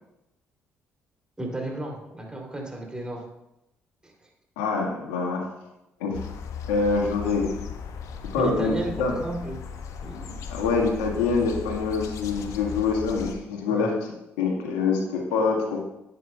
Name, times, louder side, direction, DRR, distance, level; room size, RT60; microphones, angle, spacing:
voice 1, 1.4-3.2 4.0-4.1 8.4-9.6 10.0-10.4 13.7-13.9, right 2 dB, 15° right, 0 dB, 2.9 m, -33 dB
voice 2, 4.6-5.5 6.0-6.2 6.7-7.5 8.3-9.2 10.5-13.9 14.4-15.8, left 4 dB, 80° left, 0 dB, 1.5 m, -25 dB
sound 1, 6.1-13.3, left 6 dB, 65° left, 0.8 m, -37 dB
11.0 x 8.3 x 2.3 m, 0.88 s
hypercardioid pair, 50°, 6 cm